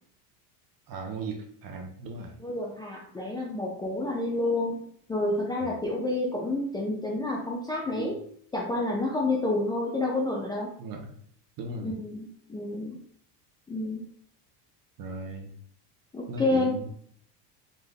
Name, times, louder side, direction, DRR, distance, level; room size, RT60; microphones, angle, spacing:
voice 1, 0.9-2.4 5.6-5.8 7.9-8.2 10.8-11.2 11.6-11.9 15.0-15.5 16.3-16.9, right 3 dB, 45° right, 4 dB, 1.0 m, -37 dB
voice 2, 2.4-8.1 8.5-10.7 11.8-13.0 13.7-14.1 16.1-16.8, left 2 dB, 10° left, -3 dB, 0.4 m, -29 dB
4.1 x 2.6 x 3.5 m, 0.62 s
supercardioid pair, 115°, 47 cm